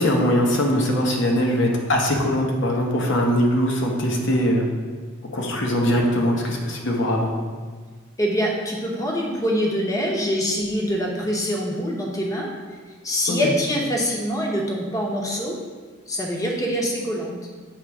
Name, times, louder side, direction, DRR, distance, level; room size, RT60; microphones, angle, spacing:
voice 1, 0.0-4.7 5.3-7.3 13.3-13.4, equal, 60° left, 0 dB, 0.9 m, -21 dB
voice 2, 8.2-12.5 13.0-15.6 16.1-17.3, equal, 15° left, -1 dB, 0.8 m, -24 dB
7.1 x 3.0 x 4.7 m, 1.5 s
head